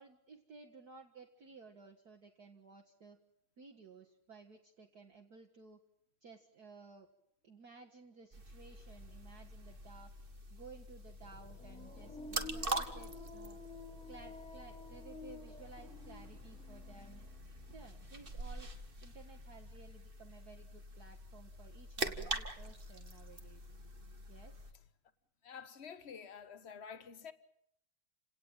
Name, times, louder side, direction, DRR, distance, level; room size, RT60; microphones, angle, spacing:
voice 1, 0.0-3.2 3.6-5.8 6.2-7.1 7.4-10.1 10.5-13.6 14.1-17.3 17.7-18.7 19.0-23.7 24.3-24.6, right 4 dB, 45° right, 2.2 m, -56 dB
sound 1, 8.3-24.7, right 2 dB, 25° right, 2.1 m, -45 dB
sound 2, 11.2-18.7, left 4 dB, 65° left, 3.2 m, -64 dB
sound 3, 11.6-18.5 18.7-19.5, left 3 dB, ahead, 4.5 m, -52 dB
voice 2, 25.4-27.3, left 7 dB, 35° left, 1.5 m, -49 dB
29.5 x 18.0 x 9.0 m
omnidirectional pair, 2.4 m